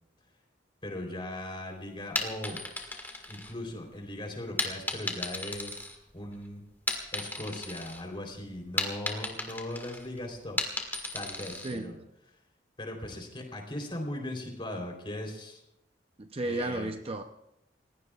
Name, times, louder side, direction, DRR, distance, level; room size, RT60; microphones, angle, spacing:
voice 1, 0.8-2.6 3.3-5.7 6.1-6.6 7.1-10.6 11.1-12.0 12.8-15.6 16.4-16.9, left 1 dB, 30° left, 2 dB, 3.7 m, -38 dB
sound 1, 2.0-3.9 4.6-6.4 6.7-8.0 8.3-11.8, left 2 dB, 10° left, 1.9 m, -35 dB
voice 2, 16.2-17.2, right 2 dB, 30° right, 6 dB, 0.7 m, -33 dB
29.5 x 16.5 x 2.4 m, 0.84 s
head